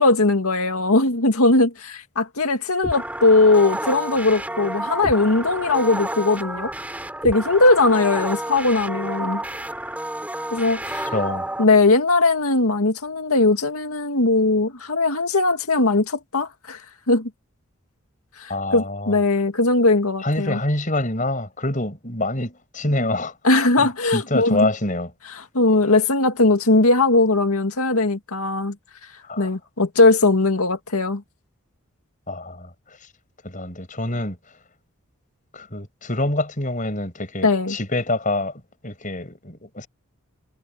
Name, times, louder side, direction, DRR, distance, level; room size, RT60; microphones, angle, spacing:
voice 1, 0.0-6.7 7.2-9.4 10.5-11.1 11.6-16.8 17.1-17.3 18.4-20.6 23.4-24.7 25.4-28.8 29.4-31.2 37.4-37.8, left 2 dB, 80° left, 2.1 m, -19 dB
sound 1, 2.8-11.6, right 1 dB, 5° right, 6.8 m, -30 dB
voice 2, 11.1-11.5 18.5-19.2 20.2-23.3 23.8-25.1 29.3-29.5 32.3-32.7 33.4-34.4 35.5-38.5 38.8-39.9, left 1 dB, 35° left, 6.5 m, -26 dB
head